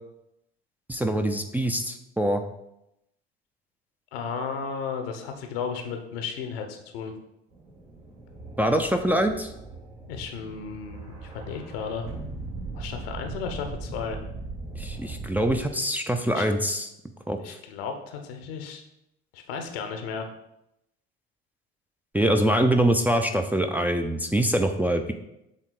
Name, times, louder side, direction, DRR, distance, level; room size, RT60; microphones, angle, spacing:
voice 1, 0.9-2.4 8.6-9.5 14.8-16.9 17.3-17.4 22.1-25.1, right 1 dB, 5° right, 4 dB, 0.5 m, -24 dB
voice 2, 4.1-7.1 10.1-12.1 12.7-14.2 16.3-16.5 17.4-18.8 19.3-20.3 22.2-22.4, left 6 dB, 70° left, 5 dB, 0.9 m, -34 dB
sound 1, 7.5-15.7, right 3 dB, 70° right, 1.9 m, -39 dB
7.4 x 3.7 x 3.9 m, 0.84 s
figure-of-eight pair, 60°, 31 cm